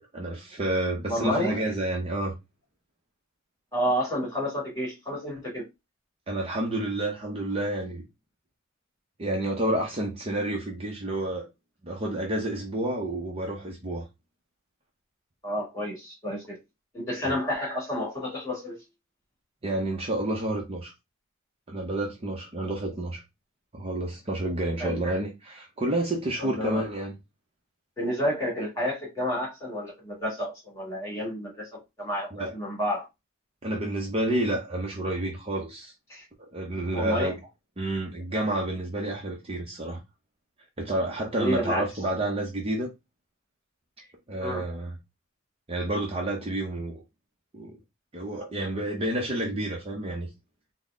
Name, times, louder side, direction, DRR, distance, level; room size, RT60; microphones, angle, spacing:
voice 1, 0.1-2.3 6.3-8.0 9.2-11.5 11.8-14.1 17.2-17.3 19.6-20.9 21.7-23.2 23.7-27.1 32.3-32.5 33.6-35.9 36.5-37.4 37.8-40.0 40.8-42.9 44.3-44.9 45.7-47.0 47.5-47.8 48.1-50.3, right 1 dB, 25° right, 0.7 m, -29 dB
voice 2, 1.1-1.5 3.7-5.6 15.4-16.6 16.9-18.8 24.8-25.0 26.4-26.8 28.0-31.5 32.0-33.0 36.1-36.2 36.9-37.3 41.4-41.8 44.4-44.6, equal, 15° left, 2.3 m, -30 dB
3.9 x 2.1 x 3.6 m
head